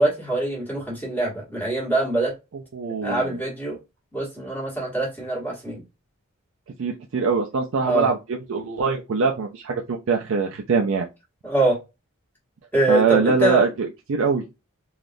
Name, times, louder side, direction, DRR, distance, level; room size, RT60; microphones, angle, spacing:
voice 1, 0.0-2.3 3.0-3.8 4.1-5.8 7.9-8.1 11.4-11.8 12.7-13.6, right 2 dB, 10° left, -4 dB, 1.2 m, -23 dB
voice 2, 2.7-3.4 6.8-11.1 12.9-14.4, right 4 dB, 65° right, 1 dB, 0.4 m, -23 dB
3.4 x 2.3 x 2.5 m, 0.25 s
head